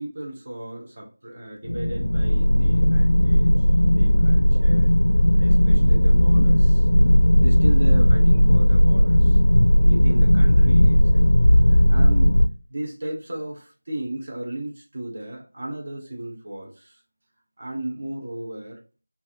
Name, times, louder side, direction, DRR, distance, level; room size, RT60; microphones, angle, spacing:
voice 1, 0.0-3.7 4.0-4.9 5.3-6.9 7.4-9.4 9.8-11.3 11.7-12.3 12.7-17.0 17.6-18.8, right 1 dB, 35° right, 1.2 m, -35 dB
sound 1, 1.6-12.5, equal, 65° left, 0.5 m, -16 dB
4.6 x 2.8 x 2.7 m
figure-of-eight pair, 170°, 0 cm